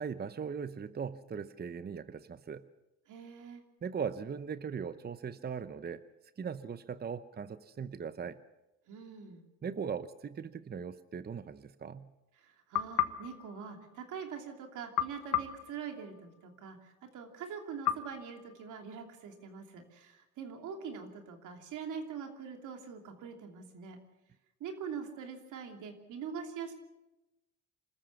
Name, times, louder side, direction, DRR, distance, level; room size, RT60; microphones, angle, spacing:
voice 1, 0.0-2.6 3.8-6.0 6.4-8.4 9.6-12.1, right 6 dB, 35° right, 13 dB, 0.8 m, -39 dB
voice 2, 3.1-3.6 8.9-9.4 12.4-24.0 24.6-26.7, right 6 dB, 80° right, 4 dB, 2.9 m, -43 dB
sound 1, 12.7-14.3 14.9-16.6 17.8-19.2, left 11 dB, 65° left, 1.3 m, -36 dB
26.0 x 14.0 x 7.2 m, 1.0 s
cardioid pair, 90°, 30 cm